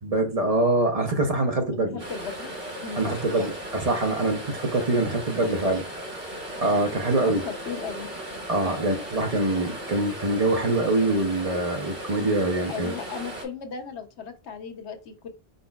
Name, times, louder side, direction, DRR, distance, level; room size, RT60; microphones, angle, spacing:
voice 1, 0.0-2.0 3.0-5.8 6.6-7.4 8.5-12.9, right 2 dB, 40° right, 0.8 m, -24 dB
voice 2, 1.7-2.5 2.8-3.5 5.4-5.6 7.2-8.1 8.6-8.9 12.7-15.3, left 6 dB, 85° left, 1.1 m, -36 dB
sound 1, 2.0-13.5, right 1 dB, 60° right, 1.8 m, -37 dB
5.1 x 3.9 x 2.3 m
omnidirectional pair, 1.1 m